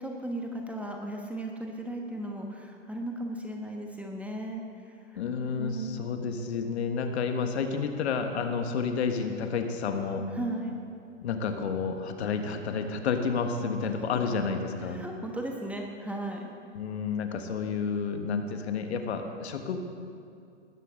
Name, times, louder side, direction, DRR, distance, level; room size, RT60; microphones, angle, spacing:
voice 1, 0.0-4.6 5.6-6.1 10.4-10.7 14.9-16.5, right 1 dB, 5° right, 1 dB, 1.1 m, -36 dB
voice 2, 5.1-10.3 11.2-15.0 16.7-19.8, left 5 dB, 60° left, 6 dB, 1.5 m, -30 dB
19.5 x 13.5 x 3.8 m, 2.4 s
figure-of-eight pair, 115°, 37 cm